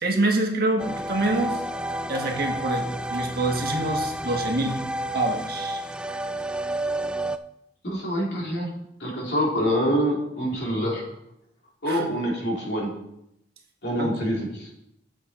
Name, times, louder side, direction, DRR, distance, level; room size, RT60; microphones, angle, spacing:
voice 1, 0.0-1.6 2.1-2.9 3.1-4.8 5.1-5.8 11.9-12.1 14.0-14.1, right 2 dB, 55° right, 2 dB, 1.6 m, -26 dB
sound 1, 0.8-7.4, right 1 dB, 5° right, 0.3 m, -30 dB
voice 2, 7.8-8.7 9.0-11.0 11.8-12.9 13.8-14.7, equal, 65° left, -2 dB, 2.9 m, -26 dB
9.3 x 7.6 x 4.2 m, 0.81 s
head